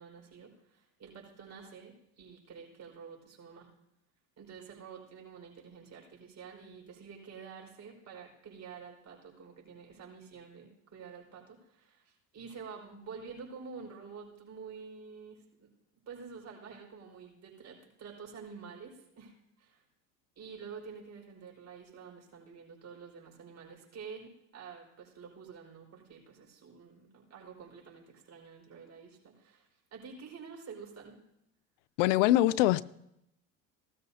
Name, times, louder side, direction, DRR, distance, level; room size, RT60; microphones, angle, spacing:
voice 1, 0.0-3.7 4.4-15.7 16.1-19.8 20.4-31.1, right 5 dB, 45° right, 5.0 m, -49 dB
voice 2, 32.0-32.8, left 15 dB, 85° left, 0.5 m, -23 dB
17.5 x 13.0 x 2.8 m
supercardioid pair, 80°, 36 cm